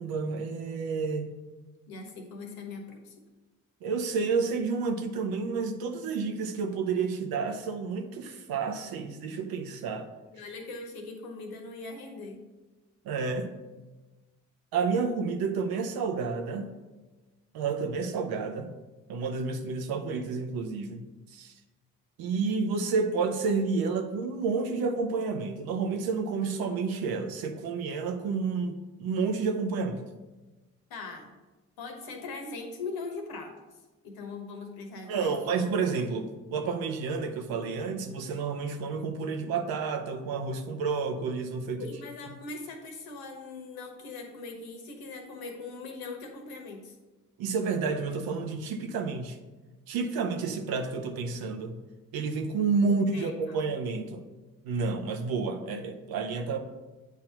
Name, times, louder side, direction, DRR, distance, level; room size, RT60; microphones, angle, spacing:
voice 1, 0.0-1.3 3.8-10.1 13.0-13.5 14.7-16.7 17.5-18.7 19.1-21.0 21.3-21.5 22.2-30.0 35.1-41.9 47.4-49.4 49.9-51.7 52.1-54.2 54.6-56.6, right 4 dB, 75° right, 6 dB, 0.8 m, -30 dB
voice 2, 1.9-3.1 10.3-12.4 30.9-31.3 31.8-33.5 34.0-35.3 41.8-46.9 52.8-53.6, left 3 dB, 75° left, 3 dB, 1.1 m, -40 dB
8.1 x 2.9 x 5.8 m, 1.2 s
hypercardioid pair, 40°, 37 cm